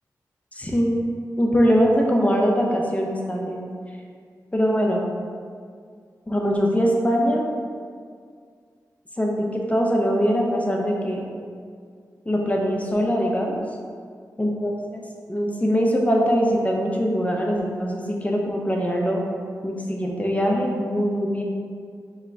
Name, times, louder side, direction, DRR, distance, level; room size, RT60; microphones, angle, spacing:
voice 1, 0.6-0.9 1.4-3.6 4.5-5.0 6.3-7.4 9.2-11.2 12.3-13.6 14.4-15.0 15.3-19.2 19.6-21.4, equal, 20° left, -1 dB, 0.8 m, -22 dB
4.4 x 2.3 x 4.6 m, 2.1 s
cardioid pair, 40°, 7 cm